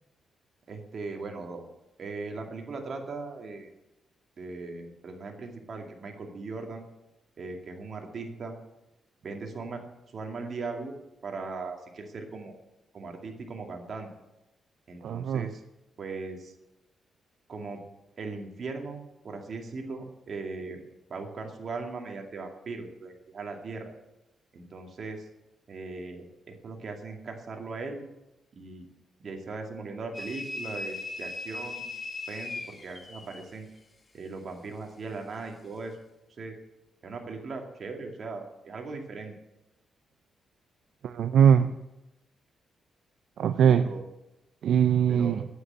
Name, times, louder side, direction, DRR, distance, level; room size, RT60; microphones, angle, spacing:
voice 1, 0.7-1.6 2.0-3.7 4.4-6.8 7.4-8.6 9.2-9.8 10.1-11.0 11.2-12.5 12.9-14.1 14.9-15.6 16.0-16.5 17.5-17.8 18.2-20.8 21.1-23.9 24.5-25.3 25.7-28.0 28.6-28.9 29.2-31.8 32.3-33.7 34.1-36.0 36.4-36.5 37.0-39.3 43.6-44.0 45.1-45.4, right 3 dB, 50° right, 2 dB, 2.3 m, -38 dB
voice 2, 15.0-15.5 41.0-41.7 43.4-43.9 44.6-45.5, right 8 dB, 75° right, 11 dB, 0.5 m, -21 dB
sound 1, 30.1-33.5, left 3 dB, 30° left, 1.3 m, -38 dB
9.5 x 9.0 x 8.8 m, 0.96 s
cardioid pair, 110°, 0 cm